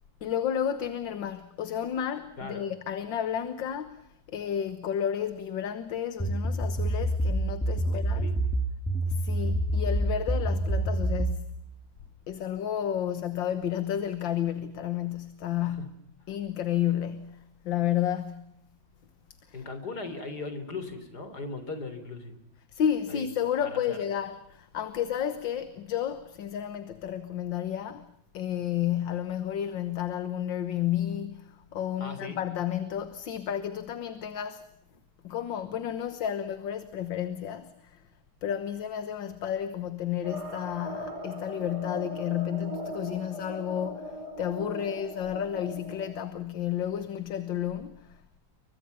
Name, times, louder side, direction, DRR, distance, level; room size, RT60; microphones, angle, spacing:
voice 1, 0.2-8.3 9.1-11.5 12.3-15.9 16.3-18.5 19.5-19.6 22.7-34.6 35.2-38.0 38.4-48.4, left 10 dB, 75° left, 1.9 m, -32 dB
sound 1, 6.2-11.4, right 1 dB, 5° left, 2.4 m, -27 dB
voice 2, 7.8-8.4 15.6-15.9 19.5-22.3 23.1-23.3 23.6-24.0 32.0-32.4, left 3 dB, 55° left, 4.2 m, -38 dB
Dark Suspenseful Sci-Fi, 40.2-46.1, equal, 55° right, 4.0 m, -39 dB
29.5 x 24.0 x 5.6 m
omnidirectional pair, 2.1 m